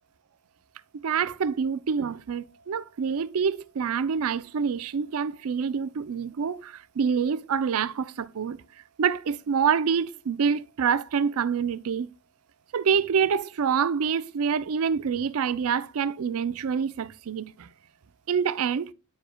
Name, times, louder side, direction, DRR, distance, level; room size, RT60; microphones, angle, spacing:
voice 1, 1.0-8.6 9.0-12.1 12.7-17.7 18.3-18.9, right 6 dB, 75° right, 0.4 m, -26 dB
10.0 x 4.9 x 2.2 m
head